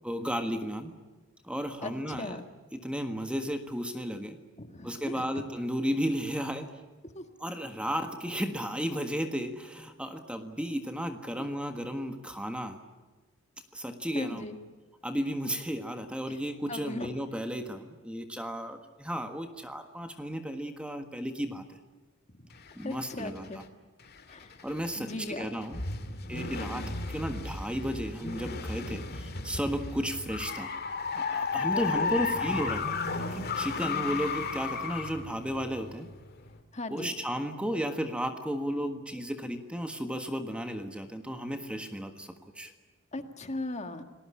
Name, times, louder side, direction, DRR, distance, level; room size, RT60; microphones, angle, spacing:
voice 1, 0.0-0.9 1.4-2.4 2.7-4.4 4.8-6.8 7.4-12.8 13.7-14.4 15.0-21.8 22.7-23.5 24.6-25.8 26.3-30.8 31.1-36.1 36.9-42.7, equal, 5° right, 6 dB, 1.5 m, -34 dB
voice 2, 1.8-2.5 4.6-5.2 7.0-7.3 14.1-14.6 16.3-16.4 16.7-17.1 22.3-22.5 22.8-23.6 24.3-24.6 25.0-25.5 26.1-26.8 31.7-32.4 36.7-37.1 43.1-44.0, left 2 dB, 30° left, 7 dB, 1.8 m, -38 dB
sound 1, 22.5-23.6 24.0-36.6, left 4 dB, 45° left, 2.2 m, -34 dB
29.5 x 20.0 x 8.6 m, 1.3 s
head